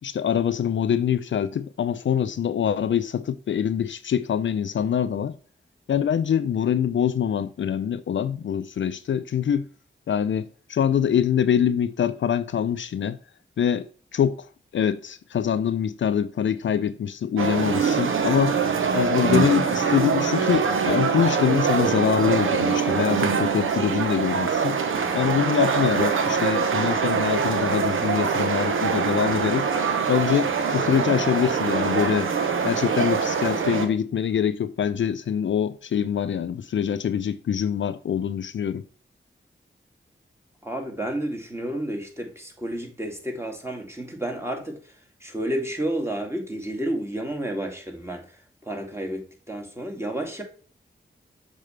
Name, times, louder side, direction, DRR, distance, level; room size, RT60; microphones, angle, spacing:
voice 1, 0.0-5.4 5.9-9.7 10.1-13.2 13.6-13.9 14.1-14.5 14.7-18.6 18.9-24.8 25.1-29.7 30.1-32.3 32.6-38.8, left 8 dB, 70° left, 0.4 m, -24 dB
sound 1, 17.4-33.9, right 6 dB, 90° right, 0.9 m, -23 dB
voice 2, 40.6-44.8 45.2-48.3 48.6-50.4, right 1 dB, 15° right, 2.3 m, -31 dB
6.6 x 4.4 x 3.3 m
cardioid pair, 50°, 20 cm